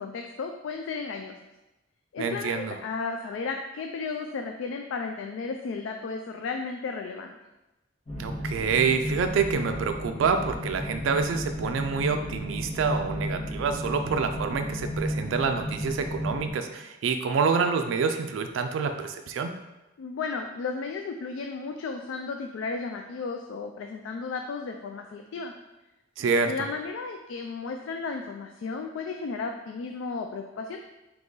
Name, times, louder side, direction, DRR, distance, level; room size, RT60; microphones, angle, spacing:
voice 1, 0.0-1.3 2.1-7.4 20.0-25.5 26.4-30.8, left 4 dB, 75° left, 4 dB, 0.3 m, -34 dB
voice 2, 2.2-2.8 8.2-19.5 26.2-26.5, right 5 dB, 75° right, 7 dB, 0.3 m, -27 dB
sound 1, 8.1-16.5, equal, 30° left, 1.0 m, -33 dB
3.9 x 2.9 x 3.7 m, 1.0 s
head